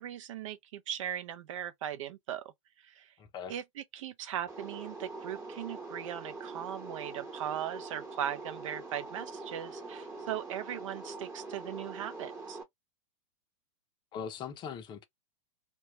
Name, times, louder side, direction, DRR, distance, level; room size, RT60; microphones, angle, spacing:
voice 1, 0.0-2.4 2.8-3.1 3.5-12.6, right 10 dB, 65° right, 0.6 m, -39 dB
voice 2, 3.2-3.5 14.1-15.0, left 7 dB, 25° left, 0.6 m, -40 dB
sound 1, 4.5-12.6, right 3 dB, 15° right, 1.0 m, -43 dB
2.2 x 2.2 x 2.9 m
hypercardioid pair, 115°, 18 cm